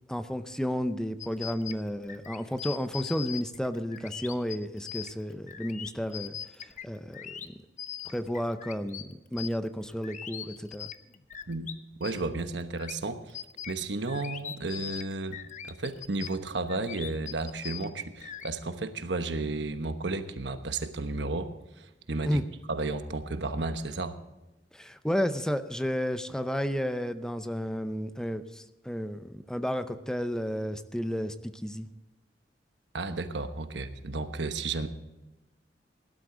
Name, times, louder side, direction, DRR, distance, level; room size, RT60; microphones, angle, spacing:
voice 1, 0.1-6.3 6.8-7.5 8.1-10.9 22.2-22.4 24.7-31.9, equal, 5° left, 10 dB, 0.6 m, -32 dB
sound 1, 1.2-11.7 12.0-18.5, left 9 dB, 45° left, 0.8 m, -41 dB
voice 2, 12.0-13.4 13.7-15.4 15.6-21.5 21.8-22.4 22.7-24.1 32.9-34.9, right 3 dB, 90° right, 9 dB, 1.1 m, -33 dB
17.5 x 11.5 x 3.8 m, 1.0 s
head